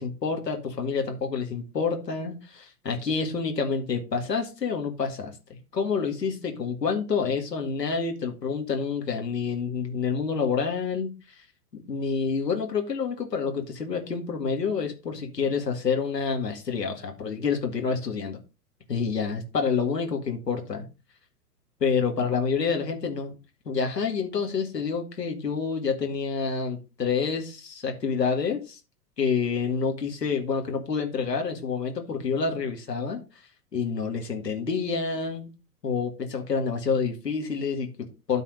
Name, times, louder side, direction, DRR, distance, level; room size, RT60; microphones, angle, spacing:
voice 1, 0.0-11.1 11.7-18.4 18.9-20.8 21.8-23.3 23.7-28.8 29.2-33.2 33.7-35.5 35.8-38.4, left 5 dB, 80° left, 3 dB, 2.0 m, -28 dB
12.5 x 4.1 x 4.8 m, 0.30 s
figure-of-eight pair, 105°, 48 cm